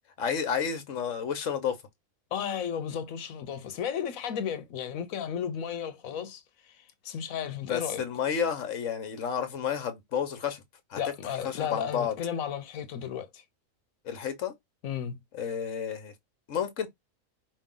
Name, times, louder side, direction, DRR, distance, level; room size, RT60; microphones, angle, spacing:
voice 1, 0.2-1.8 7.6-10.6 10.9-12.2 14.0-14.5 15.3-16.1 16.5-16.9, left 7 dB, 70° left, 1.3 m, -31 dB
voice 2, 2.3-8.0 11.0-13.4 14.8-15.2, left 8 dB, 85° left, 1.2 m, -34 dB
5.3 x 2.6 x 3.8 m
omnidirectional pair, 1.4 m